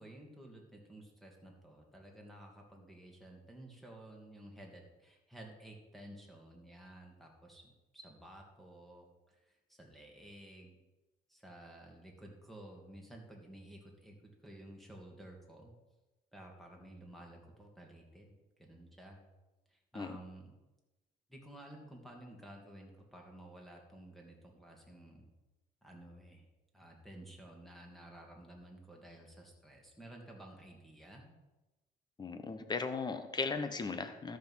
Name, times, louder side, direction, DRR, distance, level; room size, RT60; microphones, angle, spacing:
voice 1, 0.0-10.8 11.3-15.8 16.3-18.3 18.6-19.3 19.7-20.5 21.3-25.3 25.8-26.4 26.7-31.4, right 1 dB, ahead, 0 dB, 2.5 m, -53 dB
voice 2, 32.2-34.4, left 4 dB, 25° left, 8 dB, 1.1 m, -37 dB
13.0 x 6.5 x 5.7 m, 1.1 s
cardioid pair, 110°, 17 cm